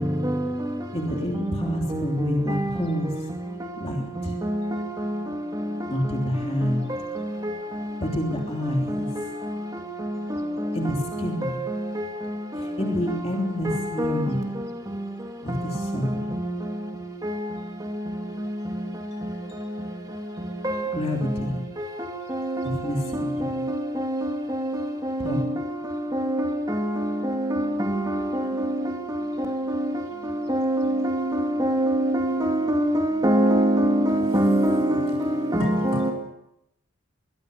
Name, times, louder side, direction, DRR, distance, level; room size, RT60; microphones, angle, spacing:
voice 1, 0.9-3.2 3.8-4.4 5.9-7.0 8.0-9.1 10.3-11.7 12.2-14.6 15.4-16.4 19.4-20.0 20.9-21.6 22.6-23.6 25.2-25.6 28.9-29.2 30.1-30.6, left 1 dB, 25° left, 3.2 m, -29 dB
voice 2, 31.6-35.0 35.6-36.1, right 1 dB, 15° right, 2.5 m, -21 dB
voice 3, 35.6-36.1, left 2 dB, 75° left, 3.8 m, -32 dB
23.5 x 21.5 x 6.7 m
head